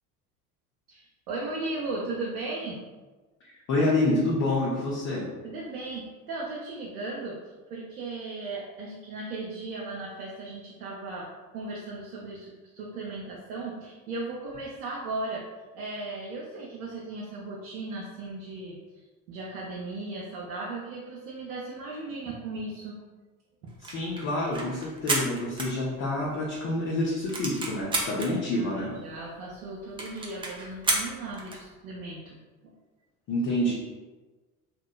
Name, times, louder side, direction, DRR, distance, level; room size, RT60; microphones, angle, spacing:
voice 1, 0.9-2.8 5.4-7.4 7.7-11.3 11.5-15.4 15.7-18.8 19.3-23.0 28.5-32.4 32.6-32.7, right 2 dB, 80° right, -4 dB, 0.6 m, -36 dB
voice 2, 3.7-5.3 23.8-28.9 33.3-33.7, left 1 dB, 40° left, -5 dB, 0.7 m, -27 dB
sound 1, 23.7-26.4 26.7-26.8 27.0-28.3 28.9-29.0 29.2-29.3 29.6-29.7 30.0-31.7, right 2 dB, 10° right, 0.4 m, -31 dB
2.8 x 2.3 x 2.2 m, 1.3 s
hypercardioid pair, 65°, 45 cm